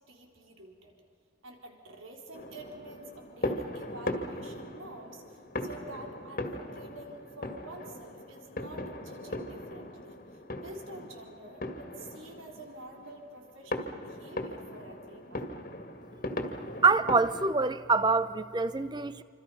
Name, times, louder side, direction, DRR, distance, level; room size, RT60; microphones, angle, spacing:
voice 1, 0.1-0.9 1.4-15.6, right 1 dB, 80° right, 3.8 m, -48 dB
sound 1, 2.3-17.5, left 1 dB, 45° left, 2.0 m, -39 dB
voice 2, 16.8-19.2, right 4 dB, 20° right, 0.7 m, -25 dB
27.5 x 26.0 x 5.7 m
head